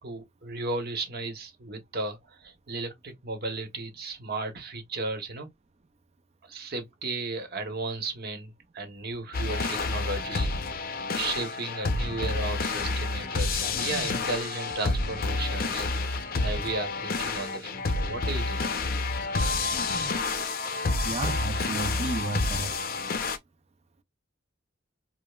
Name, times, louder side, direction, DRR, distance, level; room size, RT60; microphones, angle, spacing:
voice 1, 0.0-5.5 6.4-18.7, right 3 dB, 55° right, 1.0 m, -35 dB
sound 1, 9.3-23.4, left 3 dB, 50° left, 0.6 m, -29 dB
voice 2, 21.0-22.7, right 3 dB, 35° right, 0.4 m, -32 dB
5.0 x 2.0 x 2.3 m
head